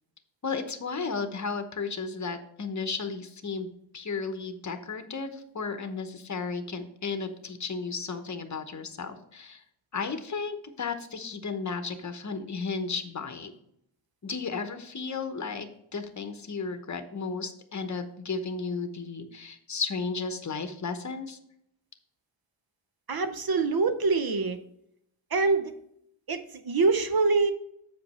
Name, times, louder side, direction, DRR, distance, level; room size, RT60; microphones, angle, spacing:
voice 1, 0.4-9.6 9.9-13.5 14.2-15.7 15.9-21.4, left 4 dB, 35° left, 8 dB, 0.9 m, -34 dB
voice 2, 23.1-24.6 25.3-25.7 26.3-27.5, right 4 dB, 50° right, 9 dB, 0.7 m, -25 dB
7.6 x 5.1 x 4.2 m, 0.74 s
wide cardioid pair, 85°, 49 cm